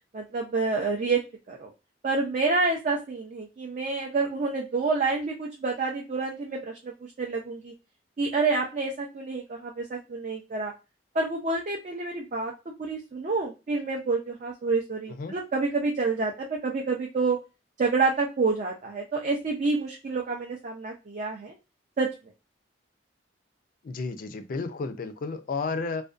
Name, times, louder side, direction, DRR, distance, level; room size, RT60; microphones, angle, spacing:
voice 1, 0.1-1.2 1.5-1.7 2.0-7.7 8.2-10.7 11.1-12.5 12.8-17.4 17.8-21.5 22.0-22.1, right 3 dB, 40° right, 0.4 m, -28 dB
voice 2, 23.8-26.0, left 4 dB, 50° left, 0.3 m, -32 dB
2.5 x 2.1 x 2.3 m
head